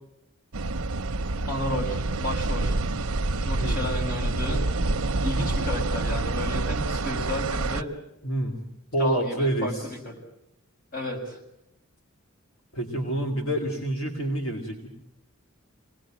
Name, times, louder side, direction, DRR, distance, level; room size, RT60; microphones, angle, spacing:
sound 1, 0.5-7.8, right 2 dB, 85° right, 0.9 m, -27 dB
voice 1, 1.5-2.8 3.4-4.6 5.2-7.9 9.0-10.1 10.9-11.4, left 1 dB, 45° left, 2 dB, 6.1 m, -32 dB
voice 2, 8.2-8.6 8.9-9.9 12.7-14.9, right 1 dB, 70° left, 2 dB, 3.0 m, -27 dB
25.5 x 20.0 x 7.7 m, 0.83 s
head